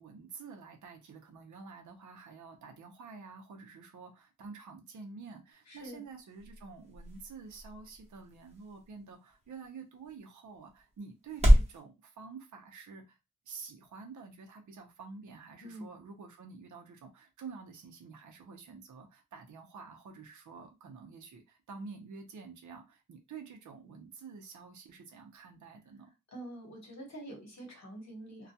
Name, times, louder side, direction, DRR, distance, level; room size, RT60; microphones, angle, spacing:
voice 1, 0.0-13.2 13.5-26.1, right 5 dB, 60° right, 0.6 m, -49 dB
sound 1, 5.5-11.8, equal, 20° right, 0.9 m, -31 dB
voice 2, 5.7-6.0 15.6-15.9 26.3-28.5, right 1 dB, 50° left, 1.1 m, -46 dB
2.3 x 2.2 x 2.6 m
wide cardioid pair, 90°, 34 cm